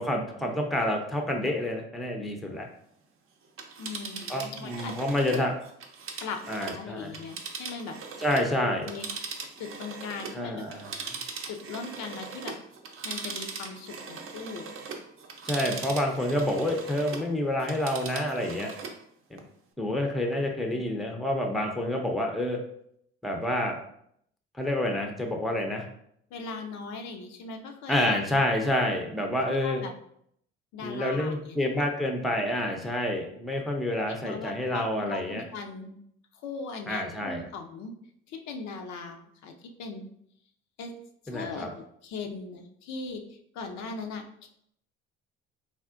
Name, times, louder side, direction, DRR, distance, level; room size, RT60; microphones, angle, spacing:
voice 1, 0.0-2.7 4.3-5.5 6.5-7.1 8.2-8.9 10.3-10.9 15.4-18.7 19.3-19.4 19.8-22.6 23.2-23.8 24.6-25.9 27.9-29.8 30.8-35.4 36.9-37.4 41.3-41.7, left 1 dB, ahead, 2 dB, 0.5 m, -28 dB
Telephone, 3.4-8.5 8.8-17.3 17.6-19.0 19.4-19.5, right 5 dB, 45° right, 0.6 m, -40 dB
voice 2, 3.8-5.3 6.2-8.0 8.6-9.1 9.6-10.6 11.5-12.5 13.0-14.7 20.3-20.4 20.7-20.8 26.3-28.1 29.5-29.9 30.7-31.9 34.2-36.0 36.3-37.9 38.3-39.5 39.8-40.1 40.8-40.9 41.2-41.7 42.0-44.5, left 4 dB, 60° left, 4 dB, 0.5 m, -39 dB
3.4 x 2.4 x 2.4 m, 0.70 s
hypercardioid pair, 60°, 31 cm